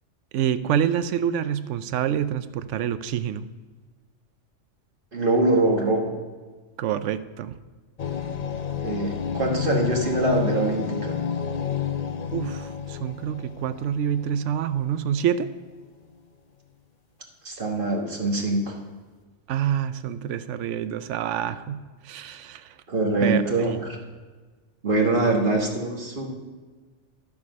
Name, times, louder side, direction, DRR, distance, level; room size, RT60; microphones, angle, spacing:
voice 1, 0.3-3.5 6.8-7.6 12.3-15.5 19.5-22.8 23.2-23.8, right 9 dB, 80° right, 13 dB, 0.9 m, -27 dB
voice 2, 5.1-6.2 8.8-11.1 17.4-18.8 22.9-24.0 24.8-26.3, right 2 dB, 45° right, 1 dB, 1.6 m, -23 dB
sound 1, 8.0-15.4, left 8 dB, 50° left, 0.5 m, -31 dB
12.0 x 7.0 x 5.3 m, 1.4 s
omnidirectional pair, 1.3 m